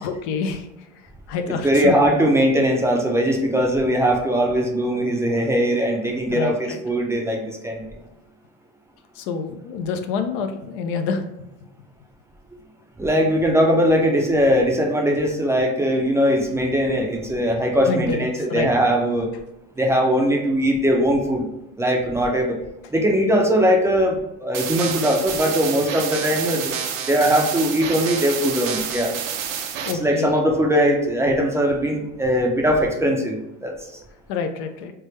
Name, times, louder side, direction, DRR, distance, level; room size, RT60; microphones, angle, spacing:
voice 1, 0.0-0.7 1.3-1.9 6.3-6.8 9.2-11.2 17.9-18.7 29.9-30.4 34.3-34.9, left 5 dB, 70° left, 6 dB, 0.5 m, -27 dB
voice 2, 1.6-7.8 13.0-19.3 19.8-21.5 21.8-22.6 22.9-26.7 27.1-29.1 30.0-33.7, equal, 10° right, 1 dB, 0.5 m, -20 dB
sound 1, 24.5-29.9, right 8 dB, 60° right, 0.6 m, -29 dB
3.3 x 2.1 x 3.1 m, 0.89 s
supercardioid pair, 105°, 30 cm